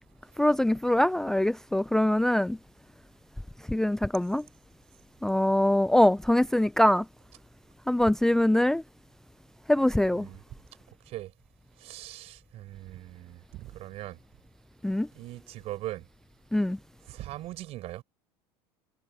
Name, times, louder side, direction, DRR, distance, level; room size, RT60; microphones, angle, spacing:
voice 1, 0.4-2.6 3.7-4.4 5.2-7.0 7.9-8.8 9.7-10.3 14.8-15.1 16.5-16.8, left 1 dB, 5° left, 0.4 m, -23 dB
voice 2, 11.8-14.2 15.2-16.1 17.1-18.0, right 15 dB, 55° right, 5.4 m, -40 dB
supercardioid pair, 95°, 12 cm